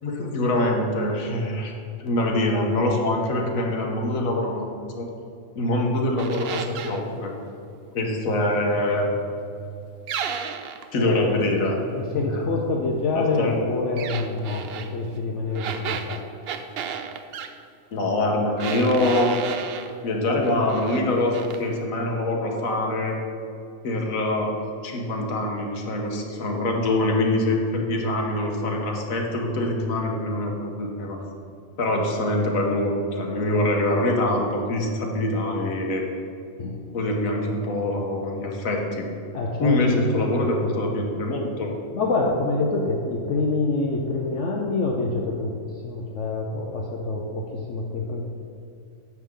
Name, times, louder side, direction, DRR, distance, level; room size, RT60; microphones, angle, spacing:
voice 1, 0.0-1.7 2.0-4.7 4.9-5.1 5.5-7.3 7.9-9.2 10.9-11.8 12.1-12.4 13.1-13.6 17.9-19.3 20.0-23.2 23.8-24.5 24.8-31.2 31.8-36.1 36.9-39.1 39.6-41.7, left 1 dB, 80° left, 1 dB, 1.5 m, -24 dB
sound 1, 6.2-7.0 10.1-10.9 14.0-14.9 15.5-17.5 18.6-19.9 20.4-21.0 21.3-21.6, right 7 dB, 65° right, 0.6 m, -32 dB
voice 2, 10.9-11.5 11.9-16.2 36.6-36.8 39.3-41.0 41.9-45.5 45.8-48.3, left 3 dB, 65° left, 0 dB, 1.0 m, -26 dB
9.2 x 7.0 x 3.7 m, 2.5 s
omnidirectional pair, 1.4 m